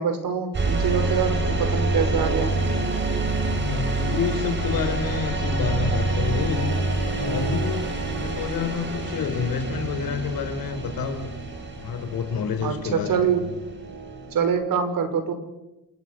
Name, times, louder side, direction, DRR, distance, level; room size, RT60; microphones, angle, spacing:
voice 1, 0.0-2.5 12.6-13.5 14.3-15.3, right 6 dB, 70° right, 8 dB, 5.3 m, -24 dB
sound 1, 0.5-14.4, right 2 dB, 30° right, 5.4 m, -27 dB
voice 2, 3.5-6.8 7.1-7.9 8.2-11.3 11.8-13.3, left 6 dB, 85° left, 7 dB, 5.0 m, -28 dB
28.5 x 27.5 x 6.6 m, 0.97 s
wide cardioid pair, 160°, 34 cm